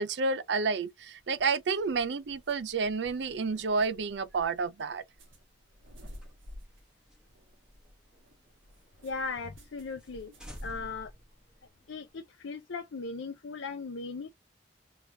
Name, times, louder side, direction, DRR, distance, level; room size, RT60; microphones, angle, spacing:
voice 1, 0.0-5.0, right 4 dB, 65° right, 0.5 m, -30 dB
sound 1, 1.0-11.2, left 1 dB, 85° right, 1.6 m, -54 dB
sound 2, 6.1-8.9 9.2-9.3 9.6-9.7 10.0-10.1 10.4-12.1, equal, 5° right, 1.1 m, -49 dB
voice 2, 9.0-10.3 10.6-11.1 11.9-14.3, left 4 dB, 85° left, 0.6 m, -38 dB
3.4 x 3.2 x 2.7 m
head